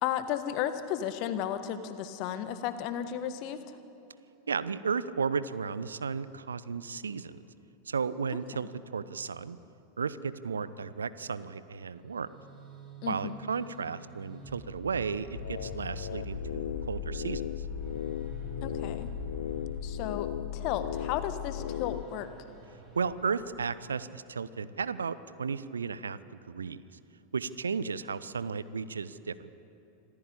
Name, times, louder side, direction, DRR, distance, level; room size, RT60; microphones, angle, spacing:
voice 1, 0.0-3.8 13.0-13.4 18.6-19.1 19.8-22.3, left 10 dB, 40° left, 11 dB, 1.5 m, -34 dB
voice 2, 4.5-7.4 7.9-9.6 10.0-12.3 13.1-17.5 23.0-26.2 26.5-26.8 27.3-29.5, right 5 dB, 70° right, 16 dB, 0.7 m, -34 dB
sound 1, 11.9-23.7, right 3 dB, 30° right, 6.4 m, -47 dB
sound 2, 15.3-22.0, left 11 dB, 60° left, 0.6 m, -36 dB
26.0 x 14.5 x 8.6 m, 2.9 s
figure-of-eight pair, 90°, 0 cm